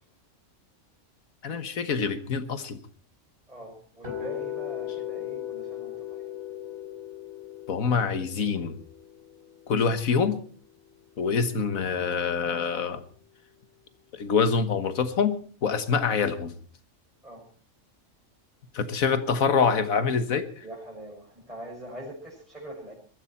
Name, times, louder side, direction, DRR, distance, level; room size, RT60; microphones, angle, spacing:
voice 1, 1.4-2.8 7.7-8.8 9.7-10.4 11.2-13.0 14.1-16.5 18.7-20.6, left 5 dB, 85° left, 11 dB, 1.7 m, -25 dB
voice 2, 3.5-6.2 17.2-17.4 20.6-22.9, right 1 dB, 5° right, -2 dB, 6.0 m, -42 dB
sound 1, 4.0-10.1, left 11 dB, 40° right, 4.7 m, -38 dB
21.5 x 14.0 x 4.4 m, 0.43 s
omnidirectional pair, 1.4 m